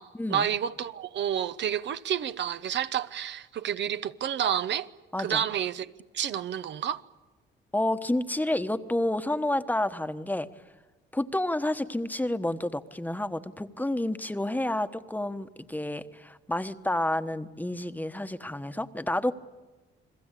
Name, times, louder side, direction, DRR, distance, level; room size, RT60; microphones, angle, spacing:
voice 1, 0.3-4.9 5.2-5.9 6.1-7.0, right 9 dB, 65° right, 0.9 m, -29 dB
voice 2, 5.1-5.4 7.7-10.5 11.1-19.3, left 1 dB, 10° left, 1.2 m, -29 dB
30.0 x 21.5 x 8.3 m
cardioid pair, 90°, 20 cm